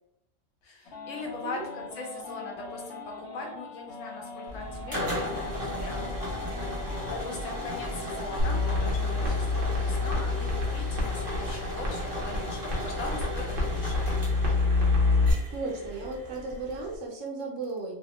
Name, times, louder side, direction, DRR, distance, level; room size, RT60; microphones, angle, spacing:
voice 1, 0.6-6.0 6.5-14.2, left 3 dB, 80° left, 0 dB, 1.1 m, -40 dB
sound 1, 0.9-8.8, left 3 dB, 65° left, 1.0 m, -42 dB
sound 2, 4.5-17.0, left 1 dB, 20° right, 0.6 m, -36 dB
sound 3, 8.4-15.3, left 3 dB, 50° right, 0.9 m, -27 dB
voice 2, 15.5-17.9, right 3 dB, 90° right, -1 dB, 1.0 m, -35 dB
2.8 x 2.1 x 2.9 m, 0.81 s
omnidirectional pair, 1.3 m